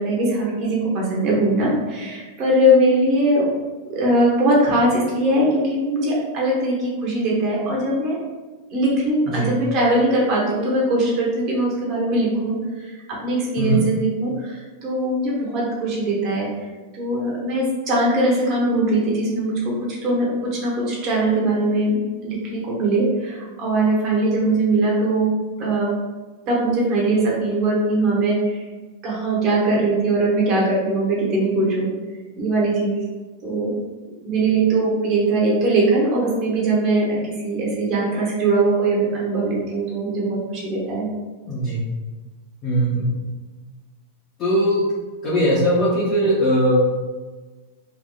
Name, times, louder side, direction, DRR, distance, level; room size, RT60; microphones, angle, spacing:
voice 1, 0.0-3.5 3.9-8.1 8.7-12.9 13.2-16.5 16.9-22.0 22.2-25.3 25.6-25.9 26.5-28.6 29.0-31.9 32.4-33.0 33.4-33.7 34.2-41.1, right 2 dB, 30° right, -4 dB, 0.9 m, -21 dB
voice 2, 41.5-41.8 42.6-43.1 44.4-44.8 45.2-46.8, equal, 25° left, -9 dB, 0.7 m, -19 dB
3.3 x 2.5 x 2.3 m, 1.3 s
supercardioid pair, 170°, 0 cm